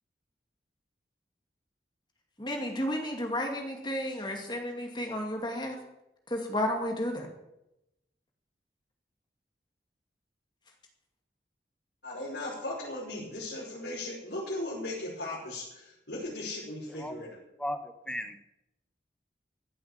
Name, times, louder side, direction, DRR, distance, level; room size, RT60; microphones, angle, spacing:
voice 1, 2.4-5.8 6.3-7.3, left 1 dB, 25° left, 2 dB, 2.3 m, -32 dB
voice 2, 12.0-17.4, left 1 dB, 75° left, -7 dB, 5.6 m, -37 dB
voice 3, 17.6-18.4, left 1 dB, 5° left, 8 dB, 1.1 m, -35 dB
15.5 x 7.9 x 9.0 m, 0.88 s
head